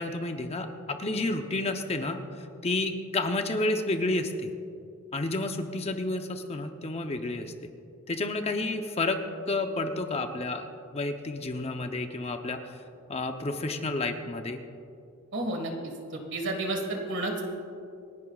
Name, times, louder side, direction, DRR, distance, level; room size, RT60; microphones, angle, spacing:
voice 1, 0.0-4.5 5.1-7.5 8.1-12.7 13.1-14.6, left 2 dB, 30° left, 6 dB, 0.7 m, -30 dB
voice 2, 15.3-15.7 16.1-17.4, right 2 dB, 60° right, 3 dB, 1.8 m, -31 dB
27.0 x 11.0 x 2.4 m, 2.5 s
head